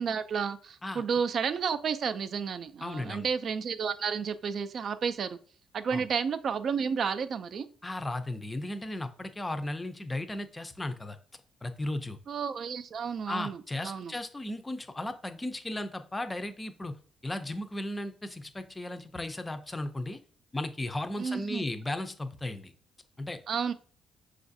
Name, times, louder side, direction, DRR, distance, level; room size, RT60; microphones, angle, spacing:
voice 1, 0.0-5.4 5.7-7.7 12.3-14.1 21.2-21.6 23.5-23.7, right 6 dB, 55° right, 11 dB, 0.3 m, -31 dB
voice 2, 2.8-3.3 5.9-6.1 7.8-11.2 11.6-12.2 13.3-16.9 17.2-20.2 20.5-22.7 23.2-23.4, left 1 dB, 15° left, 9 dB, 0.4 m, -35 dB
6.0 x 2.4 x 2.6 m, 0.43 s
cardioid pair, 105°, 0 cm